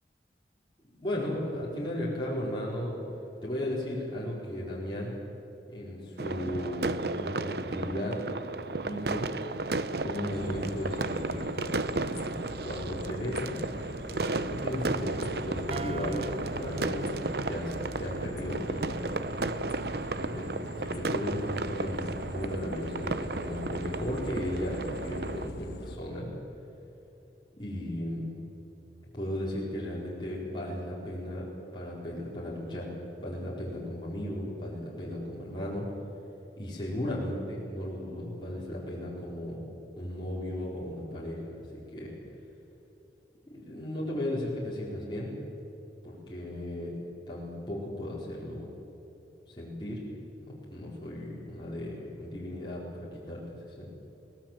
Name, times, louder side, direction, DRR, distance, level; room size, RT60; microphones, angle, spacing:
voice 1, 1.0-2.9 3.4-5.1 5.7-8.2 8.7-9.3 10.0-11.5 12.6-13.6 14.5-19.2 20.1-26.3 27.5-28.3 29.1-31.5 31.7-35.9 36.6-39.6 40.0-41.6 41.9-42.1 43.5-45.3 46.0-47.0 47.3-48.7 49.6-50.0 50.5-53.4 53.8-53.9, left 1 dB, 25° left, -6 dB, 4.5 m, -35 dB
sound 1, 6.2-25.5, right 3 dB, 65° right, 0.8 m, -34 dB
sound 2, 10.3-26.0, left 1 dB, 70° left, 1.3 m, -42 dB
sound 3, 15.7-19.4, right 2 dB, 35° right, 1.0 m, -42 dB
23.0 x 19.0 x 7.5 m, 3.0 s
head